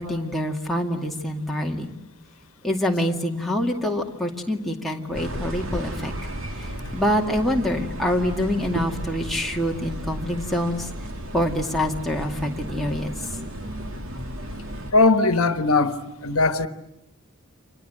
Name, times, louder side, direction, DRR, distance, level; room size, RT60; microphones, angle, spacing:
voice 1, 0.0-1.9 2.6-6.1 6.6-10.9 11.3-13.1, equal, ahead, 2.2 m, -25 dB
sound 1, 5.1-14.9, equal, 70° right, 2.6 m, -34 dB
voice 2, 14.9-16.7, left 3 dB, 80° left, 1.2 m, -19 dB
29.5 x 25.5 x 7.9 m
head